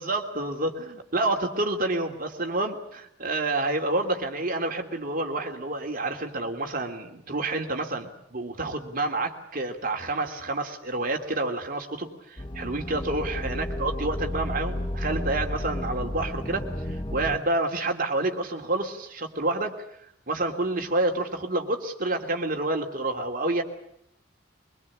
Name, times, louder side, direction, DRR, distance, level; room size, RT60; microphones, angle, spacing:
voice 1, 0.0-16.7 17.1-19.8 20.3-23.6, right 2 dB, 45° right, 3 dB, 3.0 m, -28 dB
sound 1, 12.4-17.4, left 1 dB, 25° left, 1.6 m, -32 dB
24.0 x 22.5 x 8.6 m, 0.75 s
head